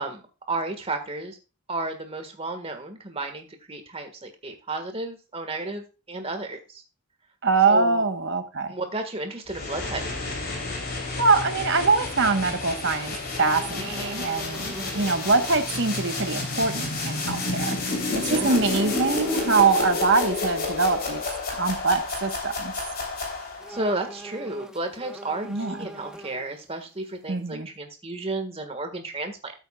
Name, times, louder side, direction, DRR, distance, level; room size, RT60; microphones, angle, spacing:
voice 1, 0.0-1.4 1.7-6.8 7.7-8.0 8.7-10.4 14.7-15.1 18.3-18.6 23.7-29.5, right 2 dB, 25° right, 1.6 m, -33 dB
voice 2, 7.4-8.7 11.2-21.2 21.6-22.7 25.5-25.9 27.3-27.7, right 4 dB, 55° right, 1.1 m, -23 dB
sound 1, 9.5-23.8, left 3 dB, 45° left, 3.3 m, -30 dB
sound 2, 13.3-15.6 16.0-16.2 18.6-20.0 23.6-26.7 27.0-27.1, right 1 dB, 5° right, 0.7 m, -42 dB
13.0 x 8.0 x 2.3 m
head